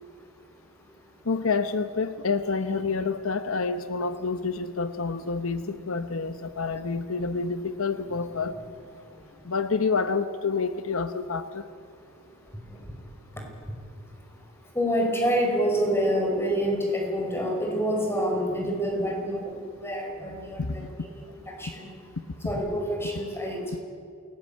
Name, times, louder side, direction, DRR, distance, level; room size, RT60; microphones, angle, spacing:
voice 1, 1.3-8.5 9.4-11.6 20.6-20.9, left 4 dB, 70° left, 11 dB, 0.9 m, -28 dB
voice 2, 14.8-21.1 21.6-21.9 22.4-23.8, equal, 10° left, 1 dB, 5.4 m, -27 dB
27.5 x 18.0 x 8.8 m, 2.4 s
head